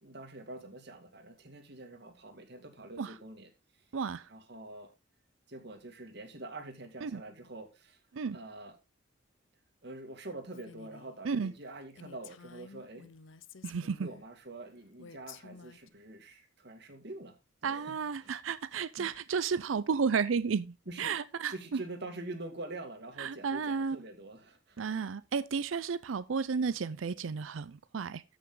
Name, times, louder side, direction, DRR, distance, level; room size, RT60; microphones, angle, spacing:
voice 1, 0.0-3.5 4.3-4.9 5.5-8.0 8.3-8.8 9.8-13.1 13.8-17.3 17.6-18.3 19.0-19.1 20.9-21.2 21.5-25.0, right 2 dB, 60° right, 2.2 m, -45 dB
voice 2, 3.9-4.3 7.0-7.2 8.1-8.4 11.2-11.5 13.6-14.1 17.6-21.8 23.2-24.0 24.8-28.2, right 5 dB, 90° right, 0.5 m, -33 dB
Female speech woman speaking, 10.5-11.1 11.6-11.7 12.0-14.3 15.0-15.9, left 6 dB, 80° left, 0.7 m, -52 dB
14.0 x 6.1 x 3.8 m
head